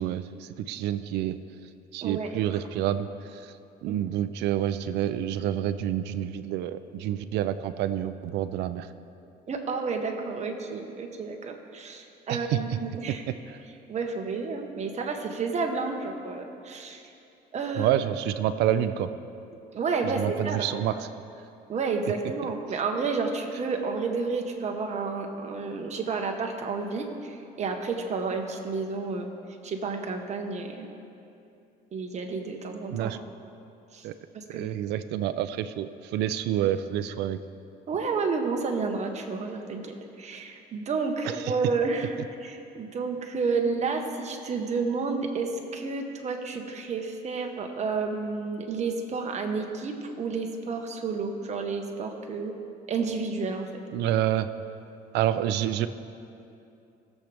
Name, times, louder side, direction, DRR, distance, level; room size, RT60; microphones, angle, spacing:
voice 1, 0.0-1.4 1.9-3.5 3.8-8.9 12.3-12.8 13.1-13.6 17.8-19.1 20.0-21.1 22.4-22.5 32.9-33.2 34.0-34.1 34.5-37.4 41.2-41.5 53.9-54.5 55.1-55.9, right 11 dB, 85° right, 12 dB, 0.5 m, -28 dB
voice 2, 2.0-2.4 3.9-4.0 9.5-13.2 13.9-17.0 17.5-17.9 19.7-20.7 21.7-29.3 29.6-30.9 31.9-33.2 33.9-34.1 34.3-34.7 37.9-42.1 42.4-52.6 52.9-53.8, right 4 dB, 40° right, 3 dB, 1.3 m, -31 dB
18.0 x 7.5 x 3.5 m, 2.7 s
cardioid pair, 110°, 17 cm